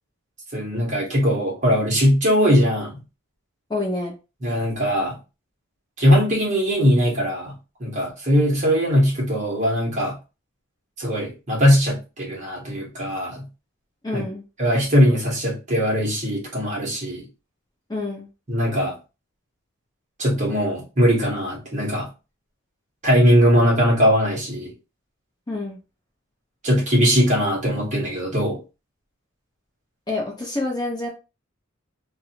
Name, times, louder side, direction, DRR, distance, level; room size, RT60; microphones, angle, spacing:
voice 1, 0.5-3.0 4.4-5.2 6.0-7.5 7.8-10.2 11.0-13.5 14.1-14.2 14.6-17.3 18.5-19.0 20.2-22.1 23.0-24.7 26.6-28.6, equal, 35° right, -2 dB, 1.2 m, -20 dB
voice 2, 3.7-4.1 14.0-14.4 17.9-18.3 25.5-25.8 30.1-31.1, left 2 dB, 20° left, -1 dB, 0.6 m, -27 dB
2.6 x 2.5 x 2.8 m, 0.30 s
head